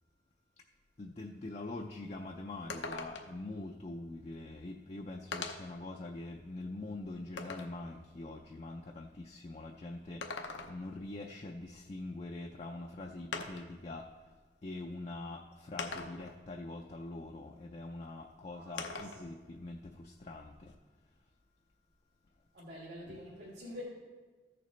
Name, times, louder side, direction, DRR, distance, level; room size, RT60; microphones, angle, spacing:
voice 1, 1.0-10.2 10.7-14.0 14.6-20.5 23.1-23.2, left 2 dB, 35° left, 2 dB, 0.4 m, -44 dB
sound 1, 1.8-1.9 2.2-2.3 2.7-3.4 4.5-4.6 5.3-5.8 6.4-7.8 10.0-11.0 12.5-12.6 13.3-13.8 14.8-14.9 15.8-16.4 18.8-19.3 19.6-20.7, left 4 dB, 85° left, 0.7 m, -42 dB
voice 2, 18.5-19.3 22.5-23.8, left 1 dB, 75° right, -8 dB, 2.4 m, -48 dB
14.0 x 6.6 x 3.2 m, 1.3 s
head